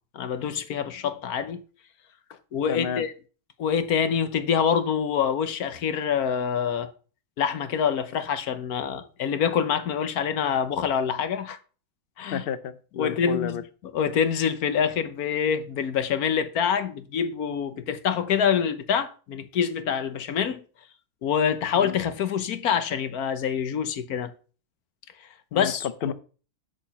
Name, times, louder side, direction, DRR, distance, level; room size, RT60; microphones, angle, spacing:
voice 1, 0.1-1.6 2.5-3.1 3.6-6.9 7.4-11.6 12.2-12.4 13.0-20.6 21.2-24.3 25.5-26.1, left 7 dB, 75° left, 1.4 m, -26 dB
voice 2, 2.7-3.0 12.3-13.6 21.7-22.0 25.5-25.7 26.0-26.1, left 7 dB, 55° left, 0.6 m, -31 dB
8.8 x 5.0 x 7.0 m
omnidirectional pair, 1.6 m